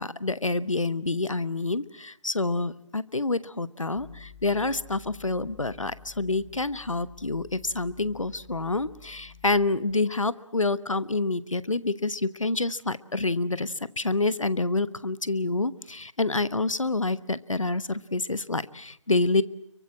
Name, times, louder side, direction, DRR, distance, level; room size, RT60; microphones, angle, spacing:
voice 1, 0.0-19.4, left 3 dB, 85° left, 16 dB, 1.2 m, -27 dB
sound 1, 3.9-9.7, left 6 dB, 30° left, 2.2 m, -50 dB
26.0 x 23.5 x 7.4 m, 0.67 s
figure-of-eight pair, 155°, 16 cm